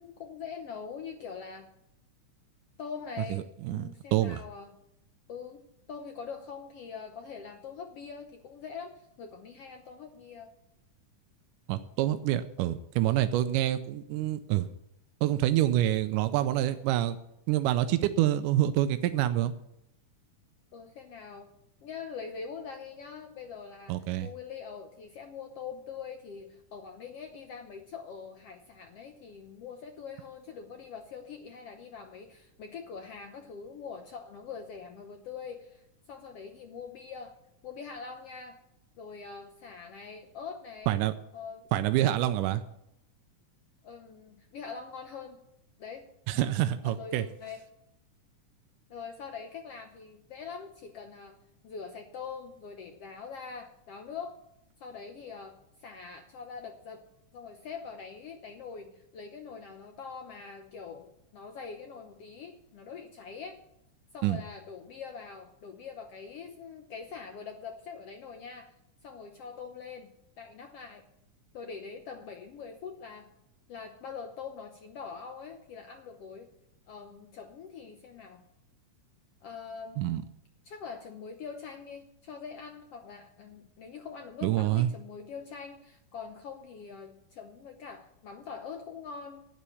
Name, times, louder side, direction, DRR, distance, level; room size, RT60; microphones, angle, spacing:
voice 1, 0.0-1.7 2.8-4.8 5.3-10.5 20.7-21.5 21.8-37.4 37.6-38.6 39.0-41.0 41.3-41.7 42.2-42.4 43.8-45.4 45.8-46.1 46.8-47.6 48.9-51.4 51.6-54.4 54.8-57.0 57.3-63.6 64.1-68.7 69.0-71.0 71.5-73.3 73.7-76.5 76.9-78.4 79.4-80.2 80.6-89.5, left 6 dB, 65° left, 5 dB, 1.6 m, -43 dB
voice 2, 3.3-4.4 11.7-14.7 15.2-17.2 17.5-19.5 23.9-24.3 40.9-41.1 41.7-42.6 46.3-47.3 64.2-64.4 80.0-80.2 84.4-84.9, right 13 dB, 85° right, 10 dB, 2.2 m, -27 dB
11.5 x 8.9 x 7.0 m, 0.79 s
omnidirectional pair, 3.6 m